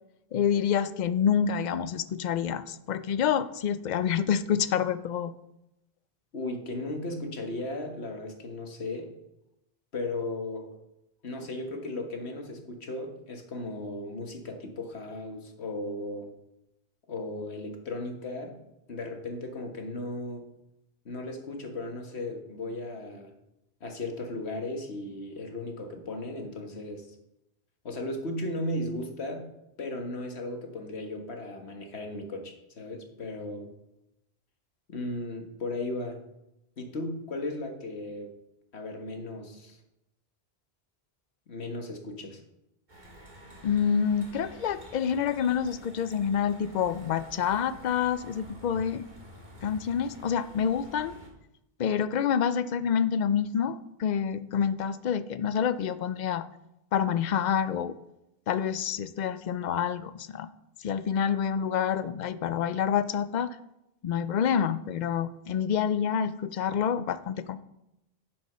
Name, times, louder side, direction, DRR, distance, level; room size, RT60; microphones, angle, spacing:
voice 1, 0.3-5.3 43.6-49.1 49.6-51.1 51.8-56.5 56.9-58.0 58.5-60.5 60.8-63.6 64.0-67.6, left 8 dB, 55° left, 14 dB, 0.6 m, -27 dB
voice 2, 6.3-9.1 9.9-10.8 11.2-16.3 17.1-18.6 18.9-20.4 21.0-23.3 23.8-27.1 27.8-29.5 29.8-33.7 34.9-36.2 36.8-38.3 38.7-39.8 41.5-42.4, left 2 dB, 90° left, 3 dB, 1.7 m, -36 dB
sound 1, 42.9-51.3, equal, 45° right, 2.0 m, -49 dB
7.8 x 7.0 x 5.6 m, 0.87 s
omnidirectional pair, 1.1 m